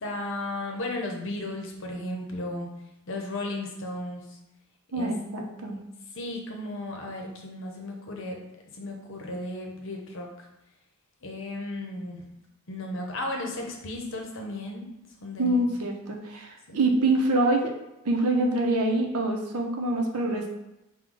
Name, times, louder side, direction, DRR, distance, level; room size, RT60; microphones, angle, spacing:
voice 1, 0.0-2.7 3.1-4.4 4.9-5.1 6.1-8.4 8.7-10.5 11.2-12.2 12.7-14.9 15.2-15.7 16.7-16.8, left 1 dB, 60° left, 1 dB, 0.8 m, -35 dB
voice 2, 4.9-5.8 15.4-17.7 18.0-20.5, right 2 dB, 80° right, 2 dB, 0.7 m, -25 dB
4.7 x 2.2 x 3.7 m, 0.89 s
head